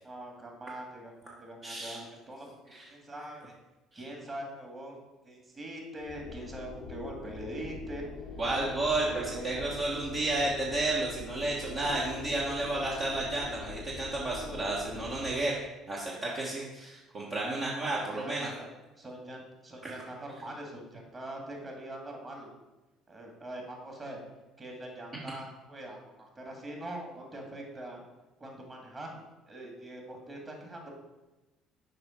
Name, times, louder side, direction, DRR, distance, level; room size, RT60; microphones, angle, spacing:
voice 1, 0.0-2.5 2.8-3.5 3.9-5.0 5.2-8.1 9.0-9.7 17.8-18.5 19.0-22.5 23.1-24.2 24.6-28.0 28.4-30.9, right 1 dB, 30° right, 1 dB, 2.2 m, -43 dB
voice 2, 1.6-2.0 2.7-2.8 3.9-4.0 8.4-15.6 15.9-18.5, right 2 dB, 45° right, -5 dB, 1.4 m, -32 dB
sound 1, 6.0-15.3, left 4 dB, 70° left, 0.8 m, -43 dB
6.6 x 4.9 x 4.4 m, 1.1 s
hypercardioid pair, 60°, 0 cm